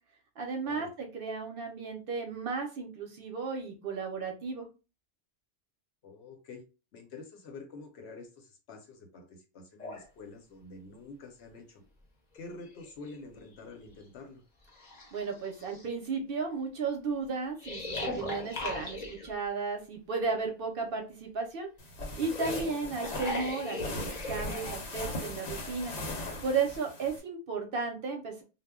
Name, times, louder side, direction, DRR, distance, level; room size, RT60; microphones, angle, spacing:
voice 1, 0.4-4.7 15.1-21.7 22.2-25.9 26.4-28.4, right 4 dB, 60° right, 3 dB, 0.7 m, -34 dB
voice 2, 6.0-6.6 6.9-11.8 12.3-14.4 22.6-23.0, left 3 dB, 70° left, 3 dB, 0.9 m, -47 dB
sound 1, 9.8-10.0 11.8-11.9 12.3-13.4 14.0-14.1 14.7-15.8 17.6-19.3 22.2-24.7, left 2 dB, 40° left, 0.7 m, -38 dB
sound 2, 21.8-27.2, left 1 dB, 85° left, 1.1 m, -39 dB
2.2 x 2.0 x 3.5 m, 0.32 s
omnidirectional pair, 1.2 m